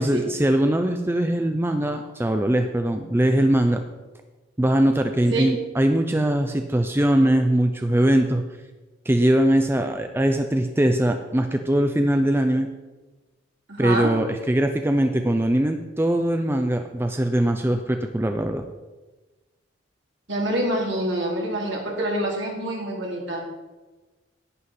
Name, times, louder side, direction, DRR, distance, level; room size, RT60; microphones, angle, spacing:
voice 1, 0.0-3.8 4.6-8.4 9.1-12.7 13.8-18.6, right 1 dB, 10° right, 6 dB, 0.4 m, -21 dB
voice 2, 13.7-14.1 20.3-23.4, right 1 dB, 65° right, -1 dB, 2.7 m, -26 dB
11.0 x 9.7 x 4.2 m, 1.2 s
head